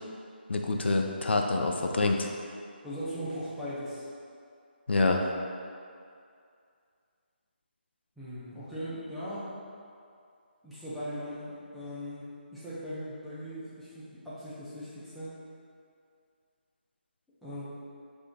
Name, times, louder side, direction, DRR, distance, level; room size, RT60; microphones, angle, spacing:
voice 1, 0.5-2.3 4.9-5.2, left 3 dB, 80° left, 2 dB, 0.4 m, -26 dB
voice 2, 2.8-4.0 8.2-9.5 10.6-12.2 12.5-15.3 17.4-17.6, equal, ahead, -14 dB, 0.4 m, -39 dB
2.8 x 2.6 x 3.5 m, 2.3 s
figure-of-eight pair, 160°, 6 cm